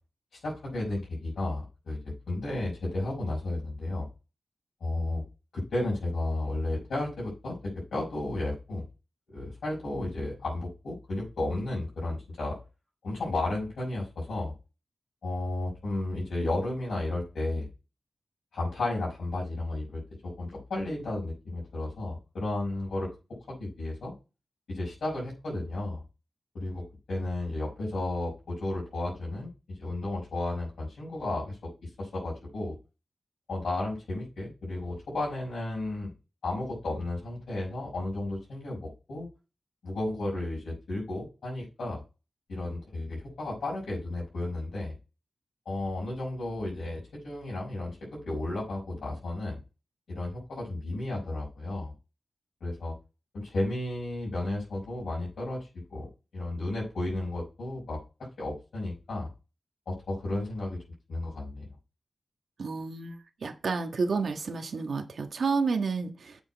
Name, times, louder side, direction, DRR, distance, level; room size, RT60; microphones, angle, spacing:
voice 1, 0.4-4.1 4.8-5.2 5.5-8.8 9.3-12.6 13.0-14.5 15.2-17.7 18.5-24.1 24.7-26.0 26.5-32.8 33.5-36.1 36.4-39.3 39.8-42.0 42.5-44.9 45.7-49.6 50.1-51.9 52.6-52.9 53.3-56.1 56.3-59.3 59.9-60.8 61.1-61.7, left 2 dB, 90° left, 5.8 m, -33 dB
voice 2, 62.6-66.4, right 4 dB, 75° right, 1.5 m, -30 dB
8.4 x 6.2 x 4.6 m
cardioid pair, 70°, 0 cm